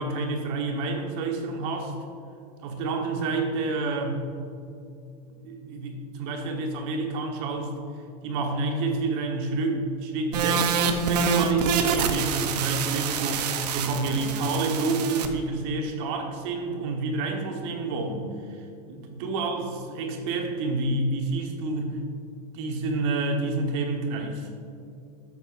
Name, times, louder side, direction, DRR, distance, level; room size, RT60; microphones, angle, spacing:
voice 1, 0.0-1.9 2.6-4.2 5.4-7.8 8.2-18.2 18.5-22.0 22.5-24.5, right 3 dB, 45° right, 3 dB, 1.3 m, -29 dB
sound 1, 10.3-15.3, right 5 dB, 90° right, 0.9 m, -26 dB
12.0 x 8.2 x 2.6 m, 2.5 s
supercardioid pair, 165°, 20 cm